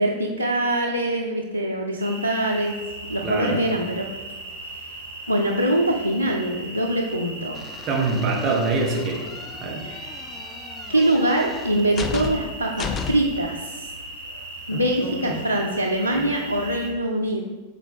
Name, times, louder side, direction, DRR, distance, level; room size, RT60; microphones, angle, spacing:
voice 1, 0.0-2.8 3.1-4.1 4.7-4.8 5.3-7.6 9.8-10.1 10.9-13.9 14.7-17.4, right 1 dB, 90° left, 0 dB, 0.5 m, -23 dB
sound 1, 2.0-16.9, right 2 dB, 65° right, 1.5 m, -38 dB
voice 2, 3.2-3.6 7.9-9.2 9.6-9.8 14.7-15.3 16.1-16.2, right 3 dB, 30° right, -1 dB, 1.4 m, -25 dB
sound 2, 7.5-13.5, left 5 dB, 25° left, 0.4 m, -35 dB
8.3 x 4.1 x 3.6 m, 1.3 s
figure-of-eight pair, 90°, 0 cm